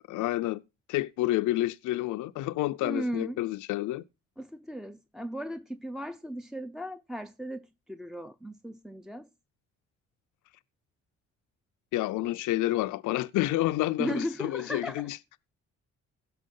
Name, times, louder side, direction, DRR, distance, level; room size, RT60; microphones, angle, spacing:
voice 1, 0.1-0.6 0.9-4.0 11.9-15.2, left 16 dB, 80° left, 0.5 m, -29 dB
voice 2, 2.8-3.4 4.4-9.3 14.0-15.1, equal, ahead, 0.5 m, -36 dB
16.5 x 6.1 x 3.7 m
cardioid pair, 90°, 30 cm